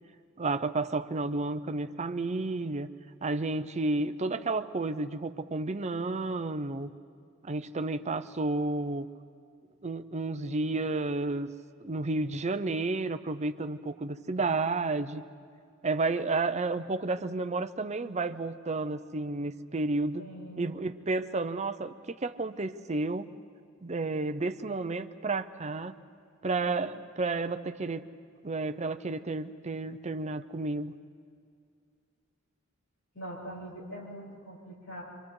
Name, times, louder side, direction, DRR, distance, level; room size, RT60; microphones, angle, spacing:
voice 1, 0.4-2.9 3.2-6.9 7.4-9.1 9.8-11.5 11.8-15.2 15.8-20.3 20.6-23.3 23.8-26.0 26.4-28.0 28.4-30.9, right 3 dB, 35° right, 9 dB, 0.7 m, -31 dB
voice 2, 20.2-20.8 33.1-35.0, right 1 dB, 70° left, -6 dB, 8.0 m, -43 dB
28.0 x 25.0 x 4.9 m, 2.3 s
head